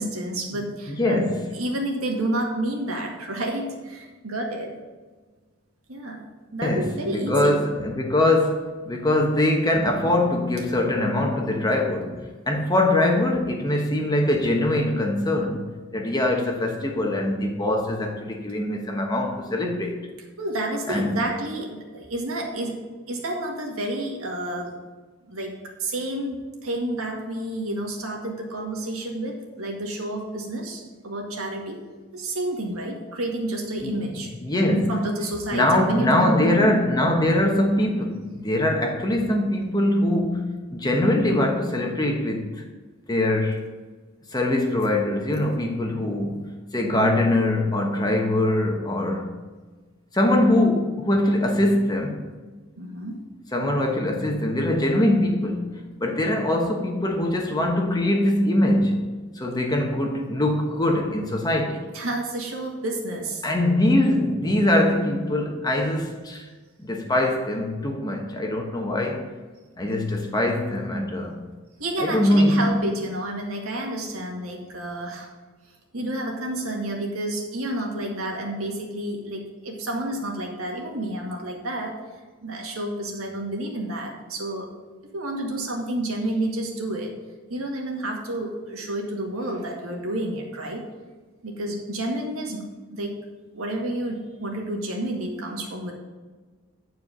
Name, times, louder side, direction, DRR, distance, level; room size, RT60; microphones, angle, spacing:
voice 1, 0.0-1.3 1.5-4.7 5.9-6.2 6.5-7.6 20.4-24.8 25.3-25.5 25.8-31.8 32.1-34.3 34.7-36.9 52.8-53.2 61.9-63.4 71.8-75.3 75.9-82.0 82.4-84.7 85.1-87.1 87.5-90.9 91.4-93.2 93.5-95.9, right 1 dB, 85° right, 0 dB, 1.9 m, -30 dB
voice 2, 0.5-1.4 6.6-15.7 15.9-19.9 20.9-21.2 33.8-34.0 34.4-35.0 35.5-42.5 43.1-43.6 44.3-49.3 50.1-52.2 53.5-59.0 59.3-61.8 63.4-66.5 66.8-69.2 69.8-71.3 72.0-72.7, left 1 dB, 20° left, 1 dB, 1.1 m, -22 dB
9.9 x 4.6 x 6.6 m, 1.3 s
head